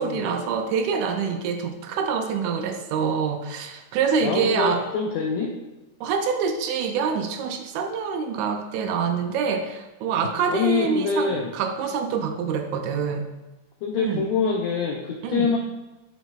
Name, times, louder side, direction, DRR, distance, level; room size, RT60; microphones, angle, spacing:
voice 1, 0.0-4.8 6.0-13.3 14.0-14.2 15.2-15.5, right 6 dB, 80° right, 6 dB, 1.8 m, -26 dB
voice 2, 4.2-5.5 10.5-11.5 13.8-15.6, left 5 dB, 80° left, 0 dB, 1.7 m, -25 dB
7.2 x 5.8 x 2.3 m, 1.0 s
omnidirectional pair, 3.6 m